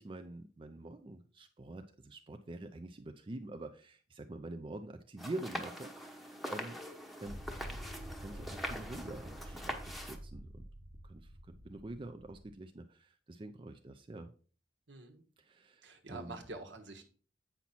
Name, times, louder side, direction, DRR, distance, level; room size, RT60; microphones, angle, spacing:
voice 1, 0.0-6.8 7.2-7.4 8.2-10.6 11.0-14.3 15.4-16.4, right 2 dB, 25° right, 6 dB, 0.5 m, -46 dB
sound 1, 5.2-10.2, equal, ahead, 0.9 m, -43 dB
sound 2, 7.3-12.5, equal, 85° right, 1.5 m, -48 dB
voice 2, 14.9-15.2 15.8-17.0, right 3 dB, 70° right, 5 dB, 1.4 m, -47 dB
8.3 x 5.8 x 4.3 m, 0.40 s
head